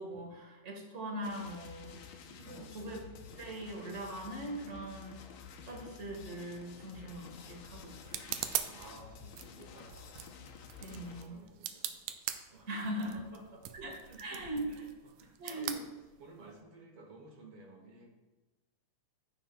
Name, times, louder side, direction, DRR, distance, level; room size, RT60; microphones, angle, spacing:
voice 1, 0.0-2.0 2.4-3.1 3.3-5.2 5.6-8.3 10.8-11.4 12.7-13.2 13.7-14.7 15.4-15.8, right 1 dB, 35° right, 0 dB, 1.1 m, -41 dB
sound 1, 1.2-11.2, left 6 dB, 75° left, 1.8 m, -51 dB
voice 2, 2.3-2.8 8.7-10.2 10.9-12.0 12.5-12.7 13.0-13.6 14.0-15.9 16.2-18.1, right 3 dB, 55° right, 1 dB, 2.0 m, -55 dB
sound 2, 6.8-16.6, right 11 dB, 80° right, 1.9 m, -43 dB
14.5 x 5.8 x 2.2 m, 1.1 s
omnidirectional pair, 3.4 m